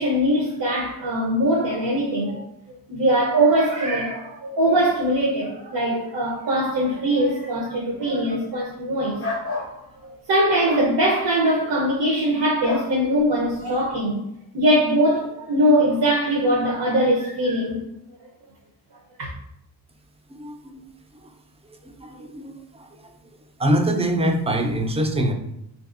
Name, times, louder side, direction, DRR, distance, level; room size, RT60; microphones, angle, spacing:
voice 1, 0.0-2.4 2.9-9.5 10.0-14.2 14.5-17.8 19.2-19.3, right 1 dB, 70° right, 0.7 m, -21 dB
sound 1, 9.2-9.7 10.6-10.9 12.6-12.9, left 3 dB, 30° left, 0.7 m, -29 dB
voice 2, 20.3-20.8 21.2-21.3 21.8-23.0 23.6-25.3, right 1 dB, 15° right, 0.3 m, -24 dB
3.7 x 2.7 x 2.4 m
cardioid pair, 80°, 41 cm